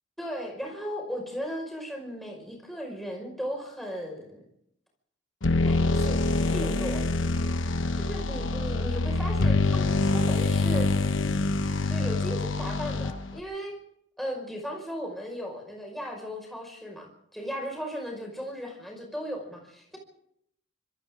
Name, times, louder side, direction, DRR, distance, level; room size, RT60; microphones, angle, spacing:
voice 1, 0.2-4.4 5.6-7.1 7.9-10.9 11.8-13.8 14.2-20.0, equal, ahead, 0 dB, 5.6 m, -36 dB
sound 1, 5.4-13.4, left 2 dB, 85° left, 1.0 m, -25 dB
26.0 x 26.0 x 3.8 m, 0.73 s
head